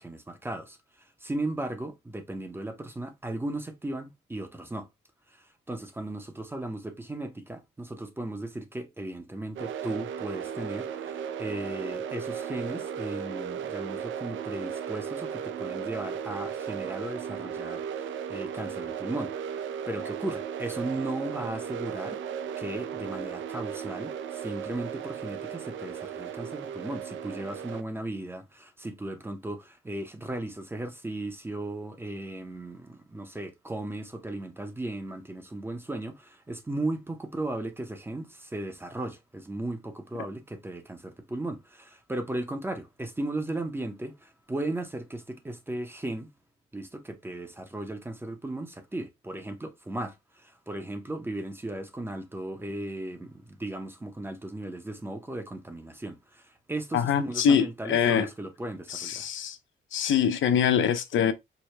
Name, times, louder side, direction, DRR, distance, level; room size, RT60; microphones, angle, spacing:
voice 1, 0.0-4.9 5.3-19.3 19.9-22.2 22.6-46.3 46.7-59.3, right 1 dB, 10° right, 0.6 m, -36 dB
sound 1, 9.6-27.8, right 8 dB, 70° right, 0.4 m, -36 dB
voice 2, 56.9-58.3 58.9-59.6 59.9-61.3, left 8 dB, 70° left, 0.5 m, -24 dB
4.6 x 2.1 x 3.1 m
wide cardioid pair, 150°, 21 cm